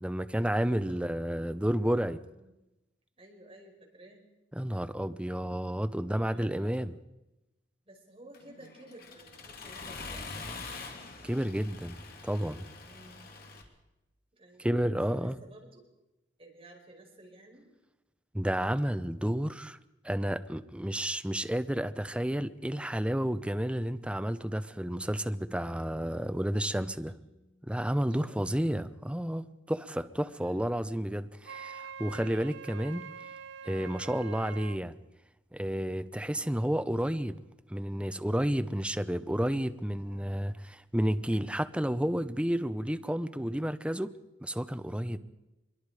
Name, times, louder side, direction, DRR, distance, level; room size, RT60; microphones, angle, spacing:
voice 1, 0.0-2.2 4.5-6.9 11.2-12.7 14.6-15.4 18.3-19.8 20.0-27.1 27.6-33.0 33.6-35.0 35.5-37.4 37.7-44.1 44.4-45.2, equal, 5° right, 0.7 m, -31 dB
voice 2, 0.6-1.0 2.3-2.5 3.2-4.2 5.9-6.8 7.9-10.7 12.8-13.3 14.3-15.8 16.4-17.7 26.9-27.2 28.0-28.7 30.4-30.7 36.2-36.6 45.0-45.2, right 1 dB, 30° right, 5.3 m, -54 dB
Accelerating revving vroom, 8.3-13.6, left 3 dB, 50° left, 2.9 m, -44 dB
Bass guitar, 24.9-31.2, left 1 dB, 25° left, 6.3 m, -62 dB
Wind instrument woodwind instrument, 31.4-34.8, right 6 dB, 70° right, 0.7 m, -45 dB
24.5 x 22.5 x 4.9 m
head